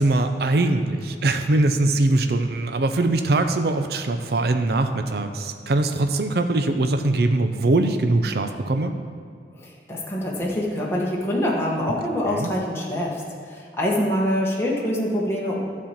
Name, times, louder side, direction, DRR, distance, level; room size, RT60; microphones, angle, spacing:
voice 1, 0.0-8.9 12.3-12.5, right 2 dB, 60° right, 7 dB, 0.5 m, -22 dB
voice 2, 9.6-13.2 13.5-15.6, equal, 15° left, -4 dB, 1.2 m, -25 dB
12.0 x 4.3 x 7.3 m, 2.1 s
head